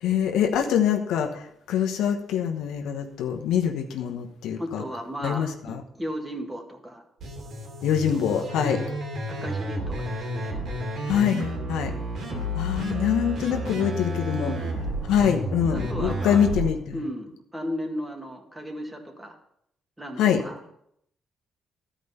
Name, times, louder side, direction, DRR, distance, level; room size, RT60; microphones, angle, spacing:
voice 1, 0.0-4.8 5.2-5.8 7.8-8.8 11.1-11.9 12.6-14.5 15.1-17.0 20.2-20.4, left 8 dB, 90° left, 4 dB, 1.0 m, -24 dB
voice 2, 4.6-7.0 8.1-8.9 9.3-10.6 12.3-12.6 14.4-14.7 15.2-15.3 15.7-16.4 16.9-19.4 20.0-20.7, equal, 10° right, 2 dB, 1.9 m, -36 dB
sound 1, 7.2-16.7, right 1 dB, 70° right, 2.8 m, -31 dB
13.0 x 5.1 x 5.5 m, 0.74 s
cardioid pair, 90°, 0 cm